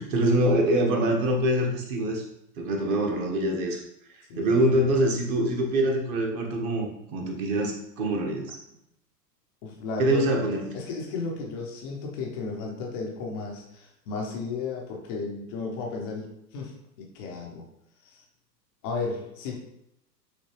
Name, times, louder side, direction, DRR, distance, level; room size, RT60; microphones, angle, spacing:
voice 1, 0.0-2.2 2.6-3.8 4.4-8.6 10.0-10.8, right 1 dB, 35° right, 1 dB, 0.9 m, -24 dB
voice 2, 9.6-10.2 10.7-16.3 16.5-17.6 18.0-18.2 18.8-19.6, left 4 dB, 15° left, 0 dB, 0.4 m, -34 dB
6.3 x 2.8 x 2.9 m, 0.79 s
figure-of-eight pair, 95°, 49 cm